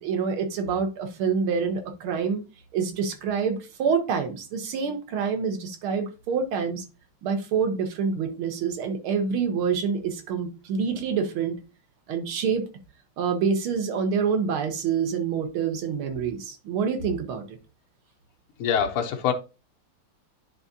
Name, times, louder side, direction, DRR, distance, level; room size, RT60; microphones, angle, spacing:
voice 1, 0.0-2.4 2.7-6.8 7.2-11.6 12.1-12.7 13.2-17.6, right 6 dB, 75° right, 1.8 m, -27 dB
voice 2, 18.6-19.3, left 8 dB, 80° left, 1.7 m, -24 dB
10.5 x 3.6 x 2.7 m
omnidirectional pair, 2.4 m